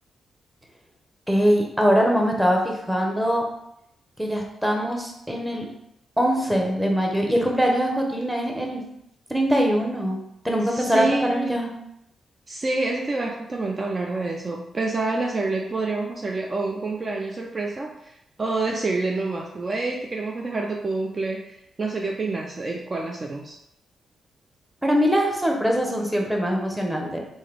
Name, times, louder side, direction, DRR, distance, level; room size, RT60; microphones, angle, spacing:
voice 1, 1.3-3.4 4.2-5.7 6.2-8.8 9.3-10.2 10.4-11.7 24.8-27.2, equal, 5° right, 0 dB, 1.0 m, -22 dB
voice 2, 10.7-11.6 12.5-18.1 18.4-23.6, right 3 dB, 45° right, 1 dB, 0.5 m, -27 dB
3.6 x 2.6 x 3.3 m, 0.78 s
hypercardioid pair, 40°, 0 cm